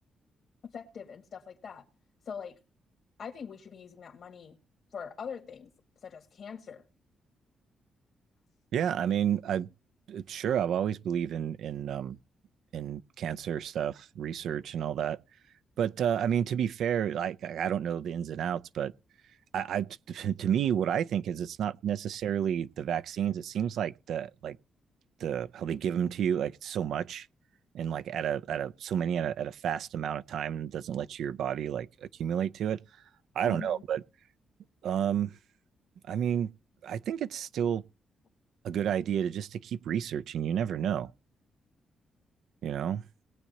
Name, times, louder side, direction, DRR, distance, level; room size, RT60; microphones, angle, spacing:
voice 1, 0.6-1.8 2.3-2.6 3.2-4.6 4.9-5.7 6.0-6.8 33.4-33.8, left 6 dB, 60° left, 2.0 m, -42 dB
voice 2, 8.7-9.7 10.1-12.2 12.7-15.2 15.8-18.9 19.5-24.6 25.2-27.3 27.7-32.8 33.3-34.0 34.8-35.3 36.1-36.5 36.8-37.8 38.6-41.1 42.6-43.0, right 9 dB, 80° right, 0.5 m, -31 dB
20.0 x 8.4 x 2.8 m
cardioid pair, 90°, 0 cm